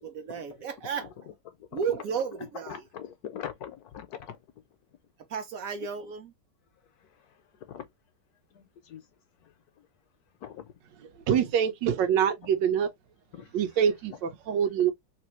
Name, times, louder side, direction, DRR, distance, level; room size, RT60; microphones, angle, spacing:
voice 1, 0.0-1.3 1.7-2.8 5.3-6.3, right 6 dB, 65° right, 0.9 m, -33 dB
voice 2, 1.5-1.8 2.7-4.4 7.7-7.9 8.5-9.0 9.4-9.5 10.4-10.6 13.3-13.5, left 9 dB, 70° left, 1.0 m, -42 dB
voice 3, 11.2-12.9 13.5-14.9, right 8 dB, 80° right, 1.4 m, -25 dB
3.3 x 2.6 x 3.0 m
omnidirectional pair, 1.9 m